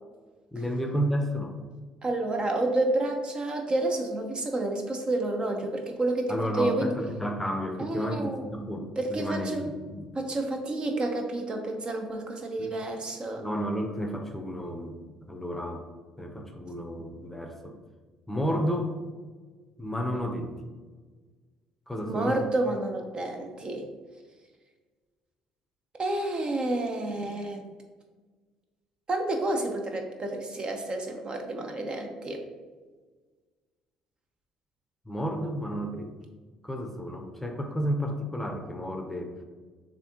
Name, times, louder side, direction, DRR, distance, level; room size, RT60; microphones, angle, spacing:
voice 1, 0.5-1.6 6.3-10.1 12.6-12.7 13.4-15.0 15.3-15.8 16.2-17.7 18.3-18.9 19.8-20.7 21.9-22.4 35.1-36.1 36.6-39.3, equal, 10° left, 4 dB, 0.7 m, -31 dB
voice 2, 2.0-7.0 7.8-8.5 9.0-9.7 10.1-13.4 22.1-23.9 26.0-27.7 29.1-32.4, right 2 dB, 35° right, 3 dB, 0.8 m, -29 dB
6.7 x 2.6 x 2.9 m, 1.4 s
hypercardioid pair, 65°, 2 cm